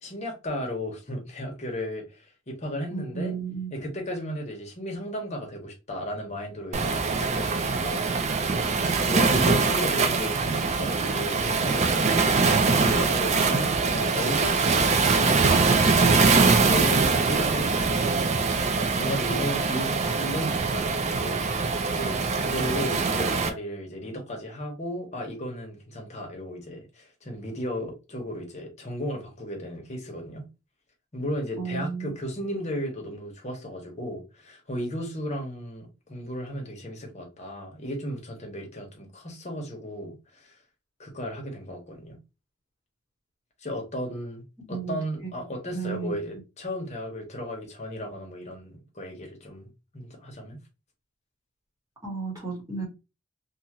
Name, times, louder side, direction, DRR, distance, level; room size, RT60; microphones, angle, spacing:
voice 1, 0.0-3.3 3.7-8.0 9.0-15.5 15.8-16.1 16.7-18.6 19.0-21.4 21.9-30.5 31.1-40.1 40.4-40.5 41.0-42.2 43.6-50.6, equal, 35° left, 1.0 m, -35 dB
voice 2, 2.9-3.8 31.6-32.1 32.5-32.6 44.6-45.3 45.7-46.2 52.0-52.8, right 5 dB, 20° right, 1.2 m, -33 dB
Waves surf, 6.7-23.5, right 4 dB, 35° right, 0.4 m, -23 dB
2.7 x 2.4 x 2.9 m
head